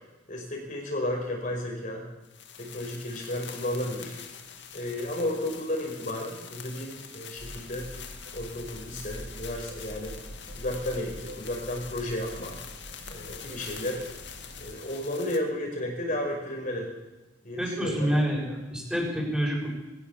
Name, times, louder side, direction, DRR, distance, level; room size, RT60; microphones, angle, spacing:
voice 1, 0.3-2.0 2.6-4.2 4.7-7.9 8.3-10.2 10.5-12.6 13.1-14.0 14.6-16.9 17.4-18.2, left 1 dB, 45° left, 0 dB, 5.5 m, -33 dB
sound 1, 2.2-15.4, left 8 dB, 65° left, 2.4 m, -45 dB
sound 2, 7.4-14.8, equal, 60° right, 3.6 m, -45 dB
voice 2, 17.6-19.7, equal, 5° right, -2 dB, 6.7 m, -27 dB
22.0 x 18.0 x 7.4 m, 1.1 s
head